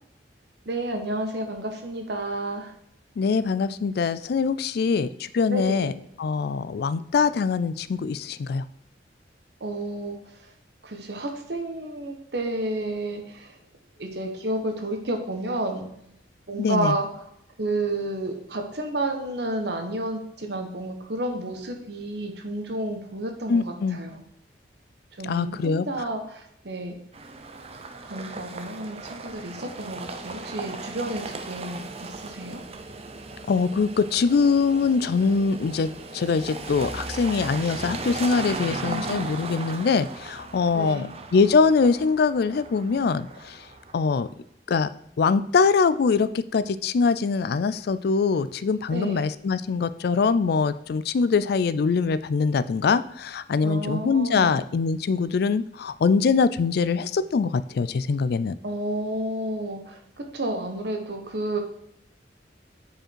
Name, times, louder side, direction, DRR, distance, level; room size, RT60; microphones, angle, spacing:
voice 1, 0.6-2.7 5.5-6.0 9.6-10.5 10.8-13.6 14.0-15.9 16.5-17.3 17.6-24.2 25.2-27.0 28.0-32.6 38.7-39.2 40.7-41.1 48.9-49.3 53.6-54.6 58.6-61.6, right 1 dB, 65° right, 4 dB, 1.2 m, -31 dB
voice 2, 3.2-5.9 6.2-8.6 16.6-17.0 23.5-24.0 25.2-25.9 33.5-43.6 43.9-44.3 44.7-44.9 45.2-58.5, left 5 dB, 60° left, 15 dB, 0.4 m, -23 dB
sound 1, 27.1-44.1, right 3 dB, 35° right, 0.6 m, -37 dB
7.5 x 5.0 x 4.6 m, 0.74 s
head